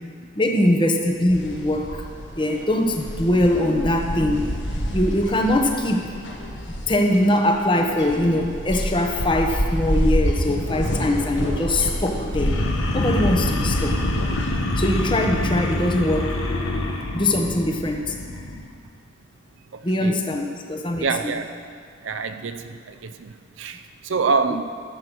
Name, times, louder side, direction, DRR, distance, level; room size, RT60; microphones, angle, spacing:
voice 1, 0.3-1.9 2.4-4.5 4.9-6.2 6.9-12.6 12.9-14.0 14.8-16.4 17.1-18.1 19.8-21.3, left 1 dB, 25° left, 2 dB, 0.9 m, -22 dB
sound 1, 1.3-14.6, equal, 60° left, 1.5 m, -28 dB
sound 2, 12.3-18.6, left 1 dB, 85° left, 1.1 m, -25 dB
voice 2, 19.7-20.3 21.0-21.6 22.0-24.6, right 4 dB, 65° right, 9 dB, 0.5 m, -26 dB
13.5 x 6.6 x 6.2 m, 2.1 s
head